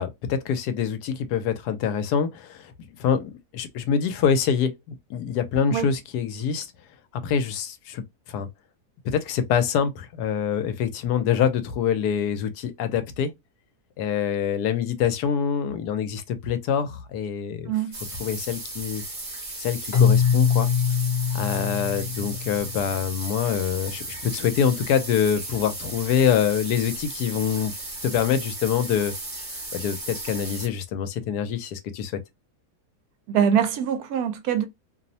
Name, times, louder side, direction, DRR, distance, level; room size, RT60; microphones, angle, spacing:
voice 1, 0.0-2.7 3.0-6.7 7.2-8.0 8.3-8.5 9.0-13.3 14.0-17.7 18.2-19.0 19.6-20.7 21.3-27.7 28.0-29.1 29.7-32.2, left 7 dB, 85° left, 1.2 m, -25 dB
sound 1, 17.9-30.7, right 2 dB, 30° right, 0.9 m, -36 dB
Keyboard (musical), 19.9-22.9, left 7 dB, 65° left, 0.9 m, -23 dB
voice 2, 33.3-34.7, right 8 dB, 75° right, 1.1 m, -23 dB
2.9 x 2.0 x 2.6 m
omnidirectional pair, 1.7 m